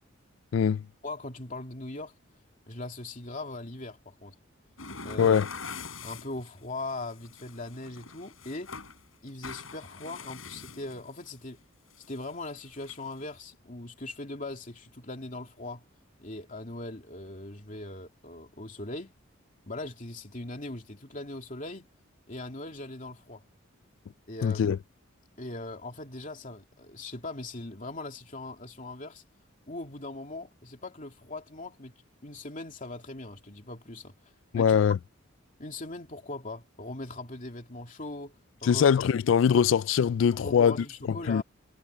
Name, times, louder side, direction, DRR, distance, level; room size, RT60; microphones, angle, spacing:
voice 1, 0.5-0.8 5.2-5.5 24.4-24.8 34.5-35.0 38.6-40.7 41.3-41.4, left 7 dB, 65° left, 0.3 m, -22 dB
voice 2, 1.0-2.1 2.7-4.4 5.0-5.4 6.0-8.7 9.2-11.6 12.0-15.8 16.2-19.1 19.7-21.9 22.3-23.4 24.3-24.6 25.4-29.2 29.7-31.9 32.2-34.8 35.6-38.4 38.6-38.9 40.3-41.4, left 2 dB, 40° left, 2.8 m, -40 dB
sound 1, 4.8-6.5 6.9-9.0 9.3-11.2 11.9-12.3 12.8-13.3, left 4 dB, 85° left, 5.3 m, -43 dB
head